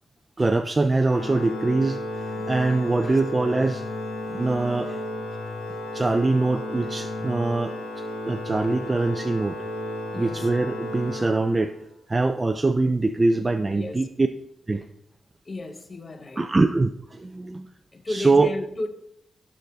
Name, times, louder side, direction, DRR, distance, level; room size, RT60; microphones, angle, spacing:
voice 1, 0.4-2.0 2.5-3.8 4.3-5.0 5.9-7.7 8.3-9.6 10.2-11.7 12.1-14.3 14.7-14.9 16.4-17.7 18.1-18.5, right 3 dB, 20° right, 0.4 m, -23 dB
Organ, 1.0-11.9, left 1 dB, 85° left, 1.5 m, -33 dB
voice 2, 2.4-3.2 4.3-4.5 4.9-5.0 7.3-7.6 10.1-10.5 13.4-14.1 15.5-16.5 17.9-18.9, left 2 dB, 30° left, 0.7 m, -36 dB
9.6 x 6.3 x 3.9 m
wide cardioid pair, 125°, 0 cm